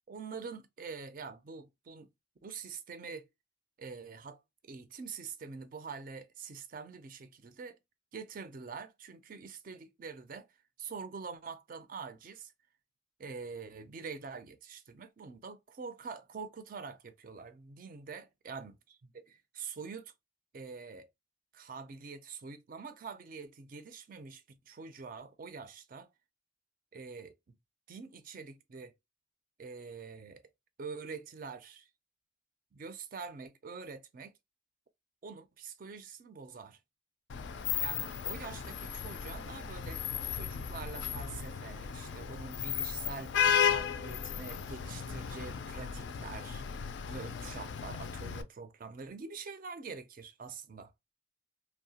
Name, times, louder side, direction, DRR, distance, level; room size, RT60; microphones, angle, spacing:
voice 1, 0.1-2.1 2.4-3.3 3.8-7.8 8.1-10.5 10.8-12.5 13.2-18.8 19.1-20.1 20.5-21.1 21.5-26.1 26.9-27.6 27.9-28.9 29.6-30.4 30.8-31.9 32.7-34.3 35.2-36.8 37.8-40.0 40.3-43.4 43.6-46.6 47.1-50.9, right 5 dB, 45° right, 0.4 m, -45 dB
Vehicle horn car horn honking / Traffic noise roadway noise, 37.3-48.4, left 8 dB, 60° left, 0.3 m, -35 dB
2.7 x 2.1 x 2.7 m
head